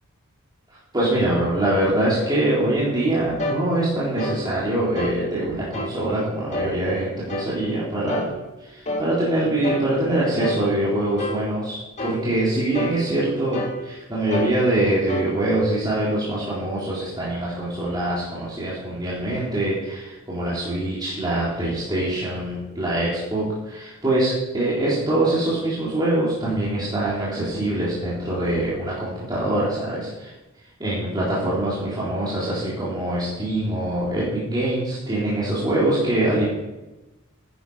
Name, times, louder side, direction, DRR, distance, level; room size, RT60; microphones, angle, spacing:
voice 1, 0.9-8.3 8.6-30.3 30.8-36.5, right 1 dB, 20° right, -9 dB, 3.8 m, -24 dB
sound 1, 3.4-3.6 4.2-4.4 5.0-5.2 5.7-6.0 6.5-6.7 7.3-7.5 8.1-8.3 8.9-9.1 9.6-9.9 10.4-10.6 11.2-11.4 12.0-12.2 12.7-13.0 13.5-13.8 14.3-14.6 15.1-15.3, left 1 dB, 35° left, 1.9 m, -28 dB
13.0 x 11.0 x 5.0 m, 1.0 s
head